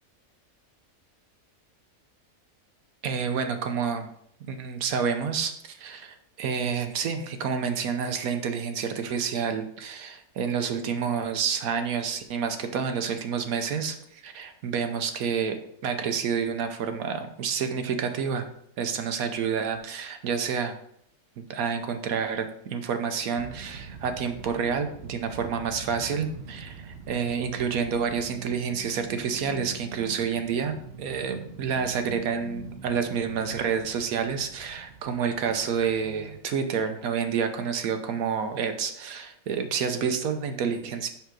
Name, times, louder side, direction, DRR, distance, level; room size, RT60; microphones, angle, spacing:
voice 1, 3.0-4.1 4.5-15.6 15.8-18.5 18.8-20.8 21.4-41.1, right 6 dB, 80° right, 7 dB, 1.2 m, -29 dB
sound 1, 23.4-36.4, right 4 dB, 55° right, 0.8 m, -43 dB
5.7 x 5.7 x 3.7 m, 0.69 s
omnidirectional pair, 1.5 m